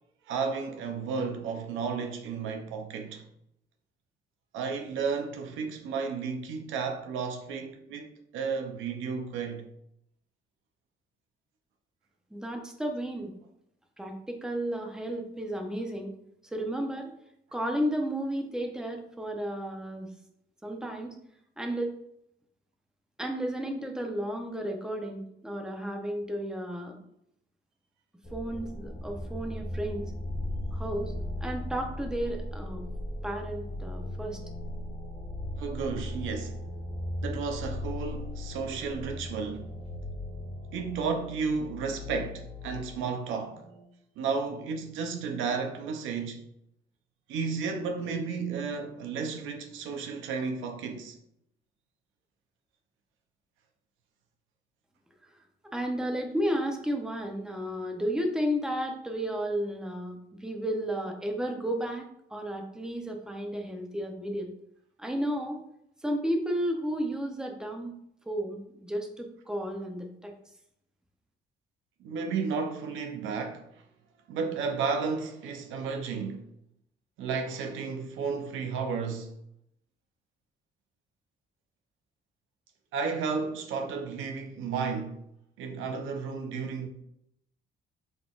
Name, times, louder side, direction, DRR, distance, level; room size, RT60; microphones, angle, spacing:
voice 1, 0.3-3.3 4.5-9.7 35.6-36.6 37.2-39.7 40.7-43.6 44.2-46.4 47.3-51.2 72.0-73.6 74.3-76.5 77.2-79.3 82.9-85.2 85.6-86.9, right 5 dB, 85° right, 0.6 m, -33 dB
voice 2, 12.3-13.3 14.0-16.1 16.4-17.1 17.5-20.1 20.6-21.2 21.6-21.9 23.2-27.0 28.3-30.1 30.7-31.1 31.4-32.9 33.2-34.4 55.7-64.5 65.0-65.6 66.0-68.0 68.3-70.3, equal, 5° right, 0.7 m, -33 dB
sound 1, 28.2-43.8, left 1 dB, 30° left, 1.3 m, -37 dB
3.9 x 3.6 x 2.4 m
cardioid pair, 90°, 20 cm